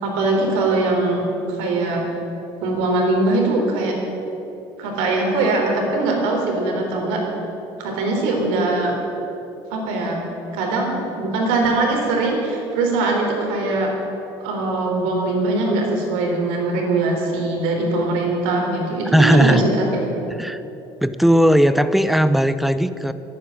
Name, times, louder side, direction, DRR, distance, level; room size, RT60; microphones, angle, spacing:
voice 1, 0.0-1.2 1.5-2.0 2.6-3.9 4.8-7.2 7.8-8.9 9.7-10.2 10.5-13.9 14.4-20.3, right 2 dB, 85° right, 1 dB, 3.6 m, -21 dB
voice 2, 19.1-19.6 20.4-20.6 21.0-23.1, equal, ahead, 13 dB, 0.5 m, -16 dB
12.5 x 9.4 x 9.6 m, 3.0 s
cardioid pair, 135°, 10 cm